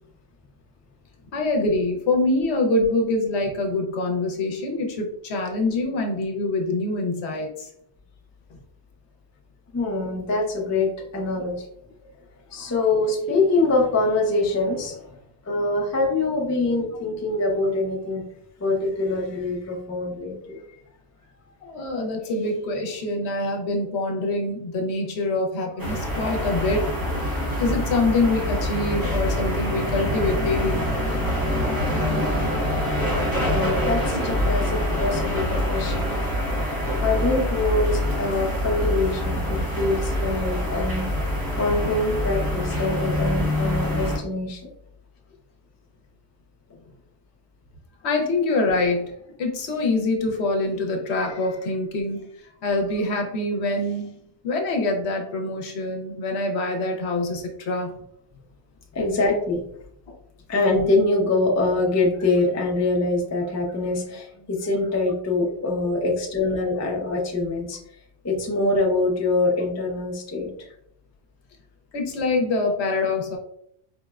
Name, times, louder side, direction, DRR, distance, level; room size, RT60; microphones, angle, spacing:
voice 1, 1.3-7.7 12.5-12.7 21.6-26.9 27.6-30.9 34.1-34.2 48.0-49.1 49.4-52.3 52.6-58.0 71.9-73.4, left 2 dB, 70° left, 2 dB, 0.9 m, -25 dB
voice 2, 9.7-11.7 12.5-15.2 15.4-18.2 18.6-20.6 33.4-36.1 37.0-41.1 41.6-44.6 58.9-59.6 60.5-67.8 68.2-70.5, left 2 dB, 25° left, -1 dB, 0.3 m, -24 dB
sound 1, 25.8-44.2, equal, 20° right, 0.7 m, -25 dB
4.3 x 2.1 x 2.3 m, 0.72 s
omnidirectional pair, 1.2 m